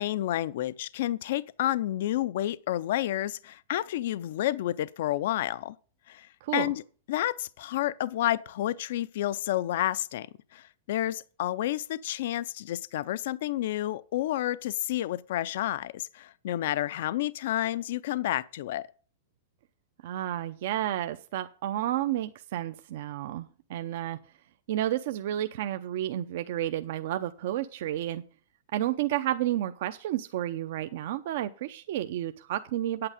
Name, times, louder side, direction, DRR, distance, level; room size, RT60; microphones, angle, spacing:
voice 1, 0.0-5.8 6.1-6.8 7.1-10.3 10.5-18.9, left 13 dB, 65° left, 0.5 m, -30 dB
voice 2, 20.0-24.2 24.7-28.2 28.7-33.1, right 13 dB, 60° right, 0.6 m, -31 dB
9.0 x 8.7 x 5.0 m
supercardioid pair, 155°, 0 cm